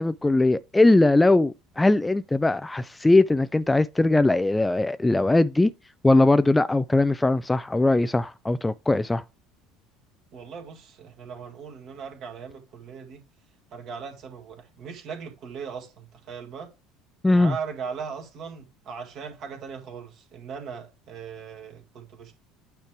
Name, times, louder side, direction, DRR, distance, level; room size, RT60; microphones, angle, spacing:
voice 1, 0.0-5.7 6.0-9.2 17.2-17.5, left 2 dB, 10° left, 0.3 m, -20 dB
voice 2, 10.3-13.2 13.7-16.7 17.3-22.3, right 6 dB, 45° right, 1.7 m, -38 dB
8.9 x 3.2 x 4.6 m
figure-of-eight pair, 65°, 0 cm